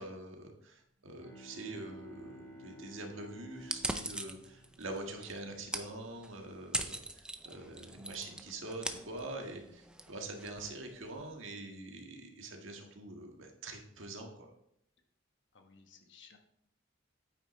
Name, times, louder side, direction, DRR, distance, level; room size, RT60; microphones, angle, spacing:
voice 1, 0.0-14.5, right 2 dB, 80° right, 2 dB, 1.6 m, -45 dB
Bowed string instrument, 1.0-5.7, equal, 20° left, 2.4 m, -53 dB
sound 1, 3.6-11.3, right 2 dB, 5° right, 0.5 m, -42 dB
voice 2, 15.5-16.4, left 5 dB, 65° left, 4 dB, 1.2 m, -58 dB
8.8 x 8.8 x 3.2 m, 0.75 s
head